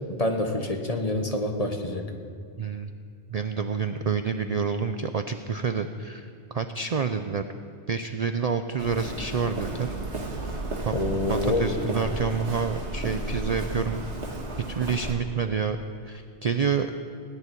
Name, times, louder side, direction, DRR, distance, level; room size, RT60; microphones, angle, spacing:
voice 1, 0.1-2.0 10.9-11.7, left 1 dB, 35° left, 4 dB, 1.4 m, -27 dB
voice 2, 2.6-2.9 3.3-7.4 7.9-9.9 10.8-11.0 11.3-14.0 14.7-15.8 16.0-16.9, right 6 dB, 45° right, 8 dB, 0.5 m, -28 dB
Walk footsteps, 8.8-15.1, right 2 dB, 75° right, 2.1 m, -33 dB
18.0 x 7.1 x 9.9 m, 2.3 s
omnidirectional pair, 1.2 m